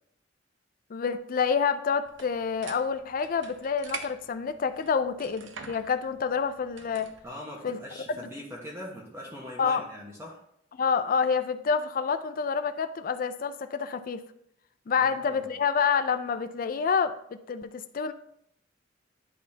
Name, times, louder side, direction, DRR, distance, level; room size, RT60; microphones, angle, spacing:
voice 1, 0.9-7.1 7.6-7.8 8.1-8.3 9.6-9.8 10.7-14.2 14.9-18.1, left 6 dB, 50° left, 11 dB, 0.4 m, -28 dB
sound 1, 2.1-7.3, right 5 dB, 85° right, 0.7 m, -45 dB
voice 2, 7.2-10.4 15.0-15.5, left 1 dB, 15° right, -4 dB, 1.2 m, -42 dB
10.5 x 4.1 x 2.8 m, 0.72 s
head